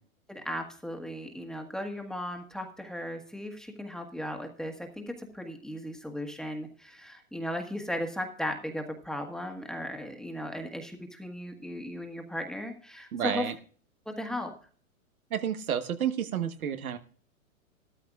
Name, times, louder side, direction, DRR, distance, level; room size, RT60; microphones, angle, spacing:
voice 1, 0.3-13.5 14.0-14.5, left 1 dB, ahead, 3 dB, 1.5 m, -36 dB
voice 2, 13.1-13.5 15.3-17.0, right 9 dB, 85° right, 9 dB, 1.4 m, -30 dB
14.0 x 13.5 x 2.4 m, 0.44 s
hypercardioid pair, 135°, 42 cm